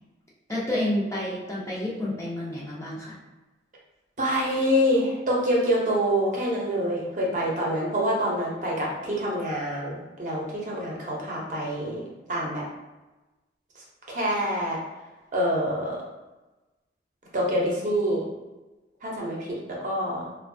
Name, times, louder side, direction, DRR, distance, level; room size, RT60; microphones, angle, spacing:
voice 1, 0.5-3.2, left 1 dB, 15° left, -6 dB, 0.5 m, -29 dB
voice 2, 4.2-12.0 12.3-12.6 14.1-14.8 15.3-16.0 17.3-18.2 19.0-19.4 19.7-20.3, equal, 45° right, -4 dB, 0.7 m, -26 dB
3.0 x 2.2 x 2.6 m, 1.1 s
head